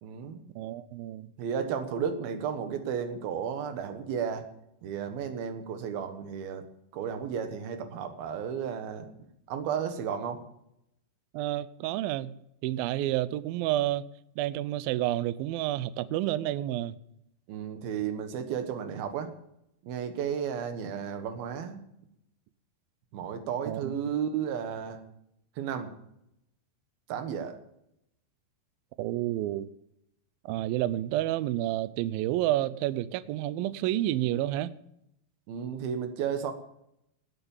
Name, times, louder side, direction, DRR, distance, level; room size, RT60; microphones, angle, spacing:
voice 1, 0.0-0.4 1.4-4.4 4.8-6.6 6.9-10.4 17.5-19.3 19.8-21.8 23.1-25.0 25.6-25.9 27.1-27.6 35.5-36.5, right 7 dB, 65° right, 3.0 m, -33 dB
voice 2, 0.6-1.3 11.3-12.3 12.6-14.0 14.4-17.0 23.7-23.9 29.0-29.7 30.5-34.7, right 14 dB, 90° right, 2.1 m, -29 dB
18.5 x 8.0 x 7.2 m
omnidirectional pair, 4.9 m